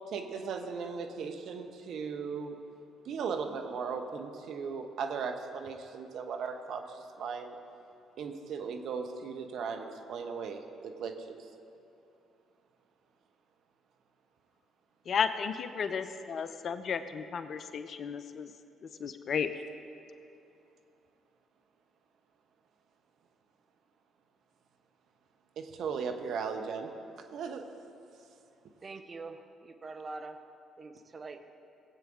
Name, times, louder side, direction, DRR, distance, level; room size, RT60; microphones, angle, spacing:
voice 1, 0.1-2.6 3.1-7.5 8.2-11.4 25.6-26.9 27.3-27.6, right 5 dB, 65° right, 5 dB, 0.9 m, -37 dB
voice 2, 15.1-18.5 18.8-19.5, left 6 dB, 55° left, 11 dB, 0.6 m, -33 dB
voice 3, 28.8-30.4 30.8-31.5, right 3 dB, 40° right, 7 dB, 1.0 m, -44 dB
17.5 x 8.3 x 3.7 m, 2.7 s
hypercardioid pair, 50°, 0 cm